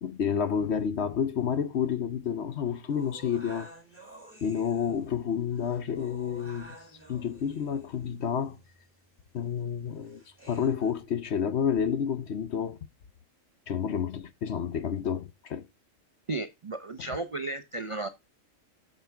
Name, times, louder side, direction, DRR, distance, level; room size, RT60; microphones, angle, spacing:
voice 1, 0.0-3.7 4.4-6.8 7.1-8.6 9.3-12.8 13.7-15.7, left 7 dB, 60° left, 1.0 m, -30 dB
sound 1, 2.9-10.9, right 1 dB, 10° left, 2.6 m, -52 dB
voice 2, 16.3-18.1, right 2 dB, 45° right, 0.4 m, -34 dB
8.1 x 6.5 x 3.4 m
omnidirectional pair, 1.4 m